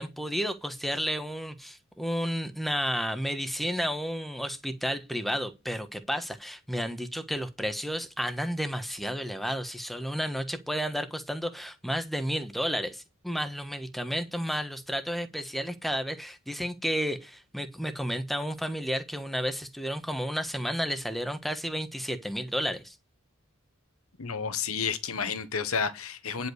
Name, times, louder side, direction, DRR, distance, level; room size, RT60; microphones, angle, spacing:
voice 1, 0.0-22.9, equal, ahead, 1.2 m, -32 dB
voice 2, 24.2-26.5, left 6 dB, 85° left, 1.3 m, -31 dB
10.5 x 5.4 x 6.4 m
head